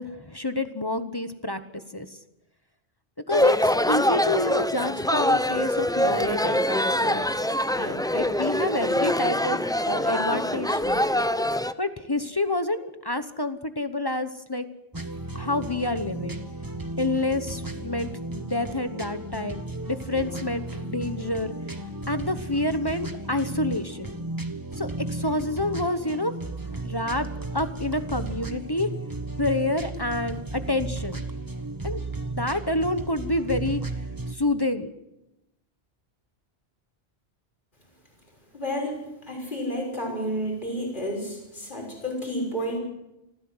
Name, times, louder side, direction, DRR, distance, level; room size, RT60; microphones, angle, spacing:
voice 1, 0.0-1.6 1.9-2.2 3.3-7.2 7.8-9.6 9.8-11.0 11.8-14.7 15.3-16.4 17.0-19.6 19.9-21.5 22.1-24.1 24.8-26.3 26.7-28.9 29.4-31.2 31.8-32.0 32.4-33.8 34.3-34.9, left 2 dB, 25° left, 10 dB, 1.0 m, -28 dB
sound 1, 3.3-11.7, left 1 dB, 5° left, 0.5 m, -24 dB
sound 2, 14.9-34.3, right 2 dB, 20° right, 1.4 m, -34 dB
voice 2, 38.5-42.8, equal, 50° left, 0 dB, 6.2 m, -31 dB
25.5 x 15.5 x 7.9 m, 0.92 s
omnidirectional pair, 1.1 m